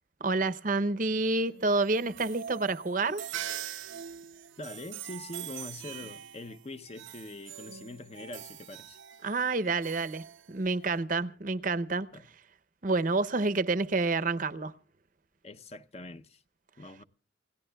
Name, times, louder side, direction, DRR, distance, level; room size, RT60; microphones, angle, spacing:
voice 1, 0.2-3.2 9.2-12.1 12.8-14.7, right 3 dB, 45° right, 0.7 m, -28 dB
sound 1, 1.5-11.0, right 10 dB, 80° right, 0.7 m, -43 dB
voice 2, 4.6-9.0 12.1-12.3 15.4-16.4 16.8-17.0, left 2 dB, 35° left, 0.6 m, -43 dB
28.5 x 17.5 x 2.3 m
head